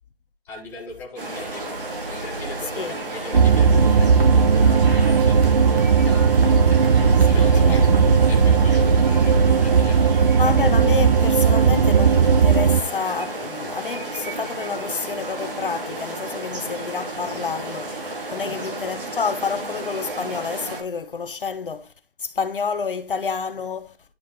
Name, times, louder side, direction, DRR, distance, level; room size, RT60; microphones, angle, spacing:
voice 1, 0.4-6.6 7.1-7.9 8.3-10.4 18.4-18.7, left 2 dB, 5° left, 1.1 m, -39 dB
sound 1, 1.2-20.8, right 2 dB, 55° right, 4.9 m, -33 dB
sound 2, 1.3-8.8, right 2 dB, 75° right, 3.3 m, -38 dB
sound 3, 3.3-12.8, right 6 dB, 40° right, 0.4 m, -16 dB
voice 2, 7.3-7.8 10.4-21.9 22.2-24.0, left 5 dB, 60° left, 0.9 m, -29 dB
10.5 x 5.2 x 3.7 m
figure-of-eight pair, 155°, 31 cm